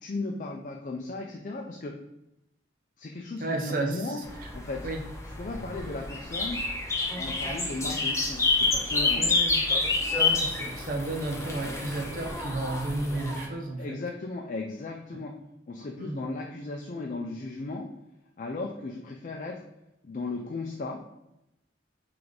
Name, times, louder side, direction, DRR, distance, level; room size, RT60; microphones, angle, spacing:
voice 1, 0.0-1.9 3.0-4.2 4.5-4.8 5.4-6.6 7.2-9.2 13.8-15.3 15.7-17.9 18.4-19.6 20.0-21.0, left 3 dB, 45° left, 1 dB, 0.4 m, -36 dB
voice 2, 3.4-4.5 4.8-5.0 9.2-9.6 10.2-14.0 15.1-15.3 16.0-16.3, right 2 dB, 50° right, 2 dB, 0.6 m, -33 dB
sound 1, 4.2-13.4, left 3 dB, 15° left, 0.7 m, -28 dB
3.4 x 3.2 x 3.9 m, 0.88 s
head